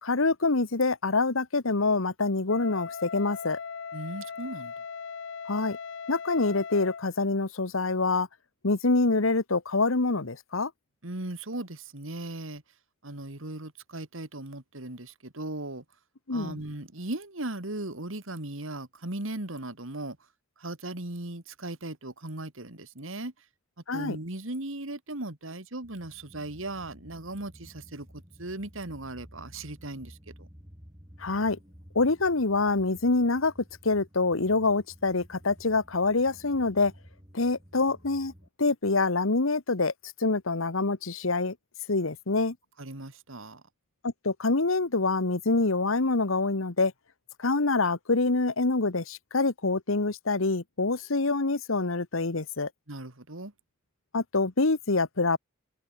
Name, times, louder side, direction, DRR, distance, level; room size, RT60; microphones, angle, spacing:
voice 1, 0.0-3.6 5.5-5.8 6.1-8.3 8.6-10.7 16.3-16.6 23.9-24.2 31.2-31.6 31.9-33.5 33.8-36.9 37.3-38.3 38.6-39.9 40.2-41.5 41.9-42.5 44.0-46.9 47.4-52.7 54.1-55.4, left 3 dB, 80° left, 1.4 m, -26 dB
Wind instrument woodwind instrument, 2.5-7.1, left 6 dB, 60° left, 0.6 m, -39 dB
voice 2, 3.9-4.7 11.0-12.6 13.0-15.8 16.3-20.2 20.6-23.3 23.9-30.5 42.8-43.6 52.9-53.5, right 2 dB, 75° right, 2.8 m, -38 dB
sound 1, 25.8-38.5, equal, 20° right, 6.6 m, -52 dB
head